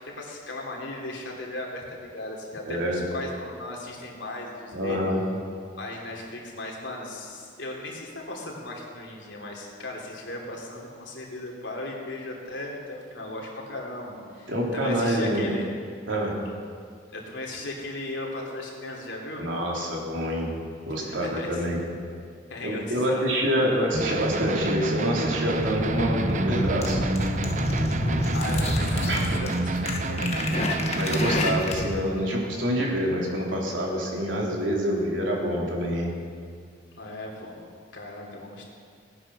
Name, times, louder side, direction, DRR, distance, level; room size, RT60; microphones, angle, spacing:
voice 1, 0.0-5.0 5.8-15.6 17.1-19.5 21.0-21.7 22.5-23.7 28.3-30.5 37.0-37.5 37.9-38.7, left 2 dB, 80° left, -1 dB, 3.3 m, -37 dB
voice 2, 2.6-3.0 4.7-5.2 14.5-15.5 16.1-16.4 19.4-20.5 20.9-21.8 22.6-27.1 29.1-29.4 30.9-36.1, equal, 90° right, -2 dB, 3.4 m, -26 dB
sound 1, 23.9-31.6, right 2 dB, 40° right, 0.7 m, -28 dB
sound 2, 25.6-32.0, left 1 dB, 35° left, 1.4 m, -28 dB
18.5 x 9.9 x 6.2 m, 2.2 s
head